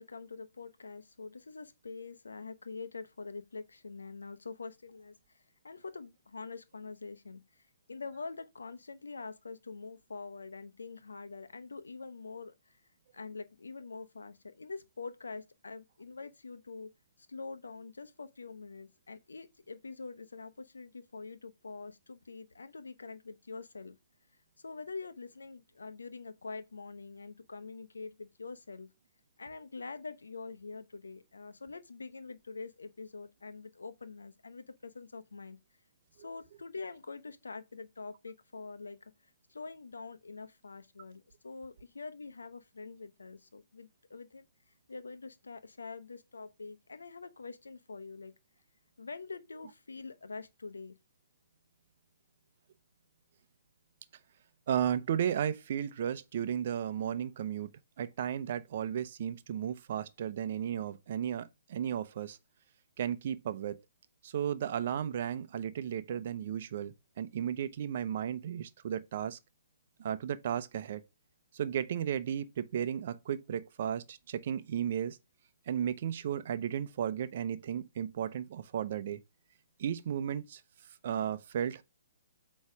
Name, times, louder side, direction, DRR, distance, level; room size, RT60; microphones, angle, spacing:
voice 1, 0.0-7.6 7.9-12.8 13.1-16.9 17.2-24.0 24.6-28.9 29.4-35.6 36.2-39.1 39.5-44.5 44.9-48.3 49.0-51.0, left 4 dB, 85° left, 0.9 m, -45 dB
voice 2, 54.7-57.7 58.0-62.4 63.0-63.8 64.2-69.4 70.0-71.0 71.5-75.2 75.7-79.2 79.8-80.6 81.0-81.8, right 9 dB, 50° right, 0.7 m, -34 dB
8.2 x 3.2 x 4.9 m
hypercardioid pair, 140°, 0 cm